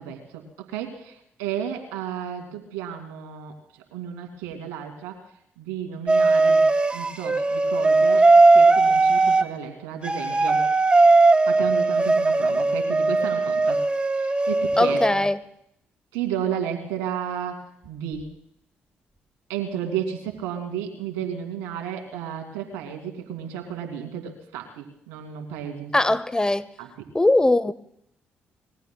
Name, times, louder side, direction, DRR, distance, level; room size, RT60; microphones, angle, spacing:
voice 1, 0.0-5.2 5.6-6.7 6.9-10.7 11.5-13.8 14.2-15.2 16.1-18.3 19.5-25.9 26.8-26.9, right 8 dB, 85° right, 2.3 m, -33 dB
sound 1, 6.1-9.4 10.0-15.1, right 3 dB, 25° right, 1.5 m, -18 dB
voice 2, 14.8-15.4 25.9-26.7 27.1-27.7, left 2 dB, 15° left, 0.7 m, -20 dB
25.5 x 21.5 x 2.3 m
hypercardioid pair, 55°, 5 cm